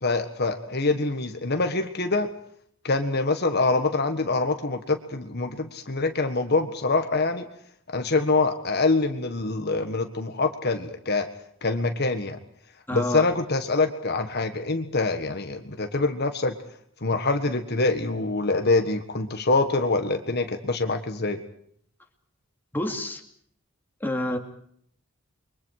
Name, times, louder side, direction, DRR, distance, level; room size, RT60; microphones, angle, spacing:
voice 1, 0.0-2.3 2.8-7.5 7.9-11.3 11.6-12.4 12.9-16.5 17.0-21.4, left 3 dB, 50° left, 6 dB, 1.6 m, -25 dB
voice 2, 12.9-13.2 22.7-23.2 24.0-24.4, left 1 dB, 10° left, 2 dB, 2.7 m, -28 dB
30.0 x 23.5 x 4.9 m, 0.66 s
head